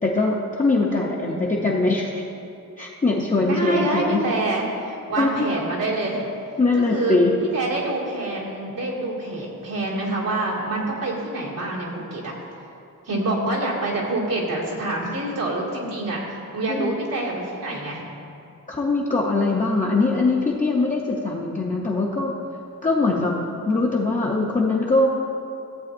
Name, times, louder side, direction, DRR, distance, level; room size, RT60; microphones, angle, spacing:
voice 1, 0.0-2.2 2.8-4.2 5.2-5.5 6.6-7.4 16.7-16.9 18.7-22.3 22.8-23.3 23.7-25.1, left 3 dB, 25° left, -4 dB, 0.6 m, -22 dB
voice 2, 1.3-1.6 3.4-6.3 6.7-12.3 13.0-18.1 21.8-21.9, right 2 dB, 90° right, -5 dB, 2.1 m, -26 dB
14.5 x 8.1 x 2.6 m, 2.7 s
wide cardioid pair, 160°, 33 cm